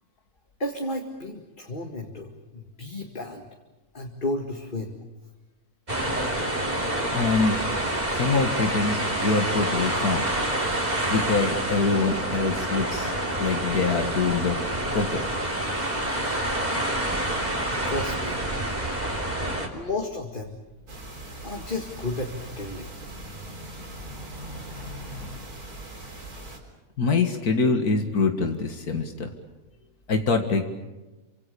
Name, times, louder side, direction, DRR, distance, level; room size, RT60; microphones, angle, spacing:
voice 1, 0.6-3.5 3.9-4.9 8.1-8.2 17.8-18.4 19.7-20.6 21.4-22.9, left 2 dB, 35° left, 2 dB, 2.2 m, -32 dB
sound 1, 5.9-19.7, right 1 dB, 25° right, 3.4 m, -27 dB
voice 2, 7.1-7.6 8.1-10.2 11.1-13.1 13.4-14.6 14.9-15.2 27.0-29.3 30.1-30.6, left 4 dB, 90° left, 5 dB, 2.3 m, -24 dB
sound 2, 19.5-25.3, left 2 dB, 75° left, 7.2 m, -46 dB
sound 3, 20.9-26.6, right 2 dB, 80° right, 4.5 m, -41 dB
28.0 x 25.5 x 6.9 m, 1.1 s
omnidirectional pair, 1.6 m